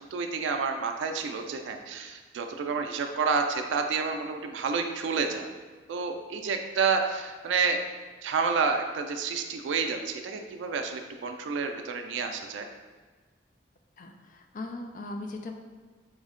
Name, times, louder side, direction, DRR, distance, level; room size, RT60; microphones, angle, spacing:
voice 1, 0.1-5.5 5.9-7.8 8.2-12.7, right 5 dB, 90° right, 5 dB, 0.3 m, -29 dB
voice 2, 14.0-15.5, left 2 dB, 45° left, 4 dB, 0.3 m, -39 dB
4.3 x 2.1 x 3.6 m, 1.4 s
head